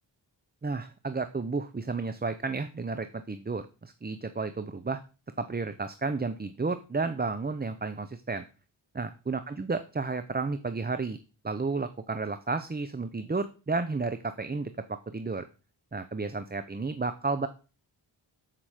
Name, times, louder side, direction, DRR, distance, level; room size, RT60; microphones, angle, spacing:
voice 1, 0.6-5.0 5.4-8.4 9.0-11.2 11.4-15.5 15.9-17.5, right 3 dB, 20° right, 10 dB, 0.7 m, -32 dB
13.5 x 5.9 x 5.0 m, 0.34 s
cardioid pair, 65°, 46 cm